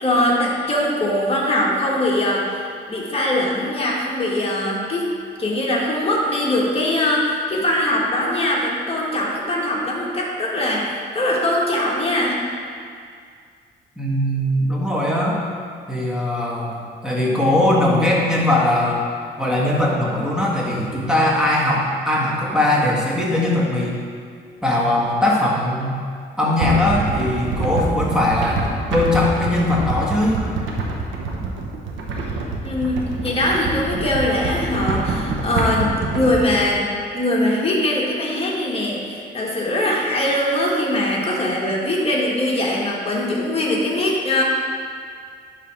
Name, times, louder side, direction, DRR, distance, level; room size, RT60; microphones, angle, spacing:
voice 1, 0.0-2.5 2.9-5.1 5.4-12.4 32.6-35.9 36.1-44.4, left 1 dB, 30° left, -3 dB, 1.6 m, -21 dB
voice 2, 14.0-15.4 15.9-19.0 19.4-24.0 24.6-26.0 26.4-28.7 28.9-30.4, left 1 dB, 5° right, -5 dB, 1.8 m, -20 dB
sound 1, 26.6-36.7, right 3 dB, 80° right, 1.0 m, -26 dB
10.5 x 3.7 x 4.5 m, 2.2 s
cardioid pair, 90°, 20 cm